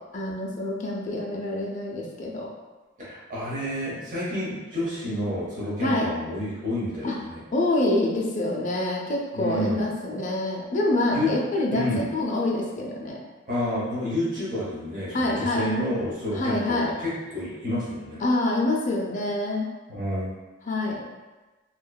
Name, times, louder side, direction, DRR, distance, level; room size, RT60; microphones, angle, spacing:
voice 1, 0.1-2.5 5.8-6.1 7.0-7.1 7.5-13.2 15.1-15.7 16.3-16.9 18.2-19.7 20.7-21.0, left 2 dB, 40° left, -2 dB, 0.4 m, -26 dB
voice 2, 3.0-7.4 9.3-9.8 11.1-11.3 11.7-12.1 13.5-18.2 19.9-20.3, left 1 dB, 40° right, -9 dB, 0.8 m, -29 dB
2.8 x 2.3 x 2.2 m, 1.2 s
head